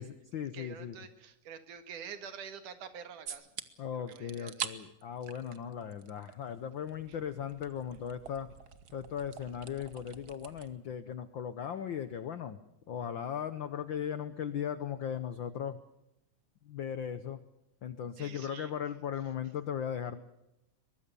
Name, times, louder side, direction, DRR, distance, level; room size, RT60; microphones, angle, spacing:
voice 1, 0.0-1.0 3.8-8.5 8.9-12.6 12.9-15.8 16.6-17.4 17.8-20.2, left 8 dB, 85° left, 12 dB, 1.0 m, -37 dB
voice 2, 0.5-3.5 3.9-4.7 18.2-18.7, right 7 dB, 90° right, 9 dB, 3.3 m, -47 dB
sound 1, 3.3-3.6 4.1-4.7 5.0-6.3 6.6-10.7, right 8 dB, 70° right, 0.9 m, -44 dB
23.0 x 21.5 x 6.8 m, 0.88 s
omnidirectional pair, 3.5 m